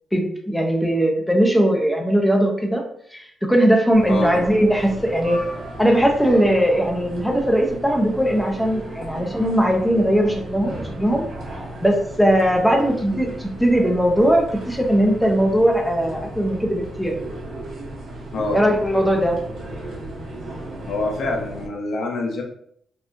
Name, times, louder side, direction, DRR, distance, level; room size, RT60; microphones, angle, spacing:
voice 1, 0.1-2.8 3.1-5.4 5.8-11.2 11.8-17.1 18.5-19.4, equal, 5° left, 1 dB, 0.5 m, -19 dB
sound 1, 3.9-21.7, right 1 dB, 85° right, 0.9 m, -35 dB
voice 2, 20.9-22.4, left 2 dB, 60° left, 1 dB, 0.7 m, -25 dB
3.6 x 2.3 x 2.5 m, 0.66 s
cardioid pair, 140°, 0 cm